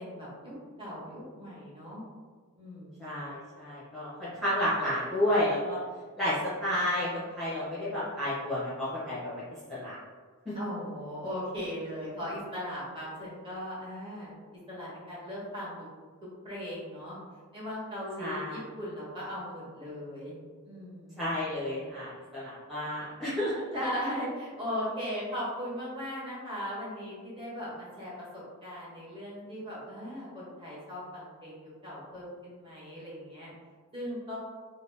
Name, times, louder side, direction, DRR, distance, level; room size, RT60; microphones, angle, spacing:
voice 1, 0.0-2.0 2.6-3.1 10.5-15.7 16.4-17.2 17.5-20.4 20.6-21.3 23.7-33.5 33.9-34.4, equal, 25° right, -7 dB, 1.1 m, -38 dB
voice 2, 3.0-5.8 6.2-9.4 9.7-9.9 10.4-10.5 18.2-18.6 21.2-23.5, left 1 dB, ahead, -12 dB, 0.7 m, -31 dB
2.8 x 2.6 x 3.2 m, 1.5 s
head